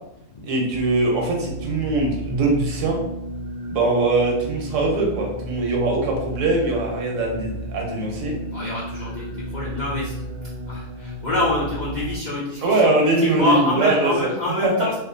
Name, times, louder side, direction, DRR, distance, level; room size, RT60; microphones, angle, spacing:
voice 1, 0.4-3.0 3.7-8.4 12.6-14.1 14.6-14.7, right 2 dB, 75° right, 0 dB, 1.0 m, -21 dB
sound 1, 0.7-12.2, equal, 50° right, 0.6 m, -33 dB
voice 2, 8.5-10.1 10.7-14.9, left 2 dB, 65° left, -6 dB, 0.4 m, -26 dB
2.4 x 2.4 x 2.5 m, 0.84 s
omnidirectional pair, 1.4 m